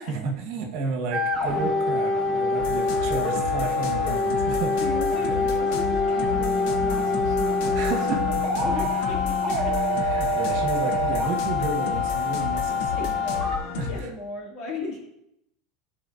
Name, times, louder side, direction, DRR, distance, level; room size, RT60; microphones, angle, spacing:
voice 1, 0.1-4.7 7.7-8.2 9.9-13.1 13.8-13.9, right 4 dB, 65° right, 2 dB, 1.2 m, -31 dB
sound 1, 1.1-13.6, left 2 dB, 30° right, 1.3 m, -25 dB
sound 2, 2.6-14.0, left 7 dB, 65° left, 0.9 m, -32 dB
voice 2, 4.8-8.0 8.6-9.8 13.0-15.1, left 2 dB, 45° left, -3 dB, 2.2 m, -36 dB
11.5 x 4.3 x 2.6 m, 0.80 s
supercardioid pair, 140°, 0 cm